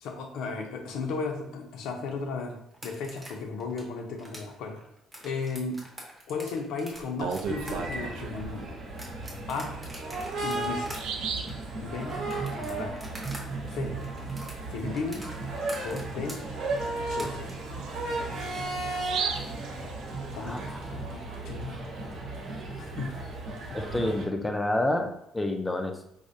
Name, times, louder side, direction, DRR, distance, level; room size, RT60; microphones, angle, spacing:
voice 1, 0.0-4.8 5.2-5.8 6.3-8.8 9.5-9.8 10.4-11.1 11.8-12.2 12.5-13.0 13.7-14.0 14.7-15.3 15.8-16.5 17.1-17.6 20.3-21.9 22.8-23.1, left 4 dB, 80° left, 3 dB, 0.6 m, -35 dB
sound 1, 2.7-13.4 13.7-17.5, right 1 dB, 10° right, 0.8 m, -45 dB
Bird vocalization bird call bird song, 7.0-8.4 9.9-10.0 10.4-10.5 10.9-11.6 15.1-15.2 15.6-15.7 16.3-20.5, right 6 dB, 90° right, 0.4 m, -36 dB
sound 2, 7.5-24.2, right 2 dB, 60° right, 0.9 m, -35 dB
voice 2, 23.7-26.1, left 1 dB, 10° left, 4 dB, 0.4 m, -28 dB
4.8 x 2.1 x 2.6 m, 0.77 s
cardioid pair, 165°, 0 cm